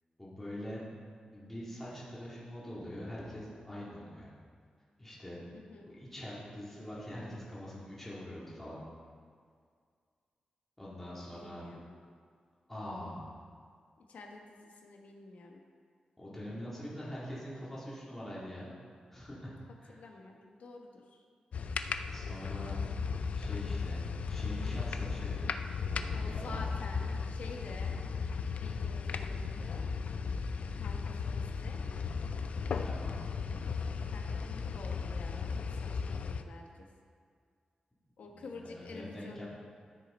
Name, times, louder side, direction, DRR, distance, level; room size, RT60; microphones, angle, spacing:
voice 1, 0.2-0.8 1.3-4.3 5.0-5.4 5.9-8.8 10.8-11.7 12.7-13.3 16.2-18.7 19.1-19.5 19.8-20.0 22.1-22.8 23.3-25.5 25.9-26.6 32.7-33.1 38.3-39.5, equal, 10° left, -8 dB, 2.1 m, -44 dB
voice 2, 5.5-5.9 11.1-12.0 14.1-15.6 19.9-21.2 26.1-27.9 28.6-29.9 30.7-31.8 34.1-36.9 38.2-39.5, left 3 dB, 85° left, 1 dB, 1.3 m, -49 dB
sound 1, 21.5-36.4, left 5 dB, 65° left, 0.4 m, -36 dB
12.5 x 6.5 x 4.3 m, 2.1 s
wide cardioid pair, 170°, 2 cm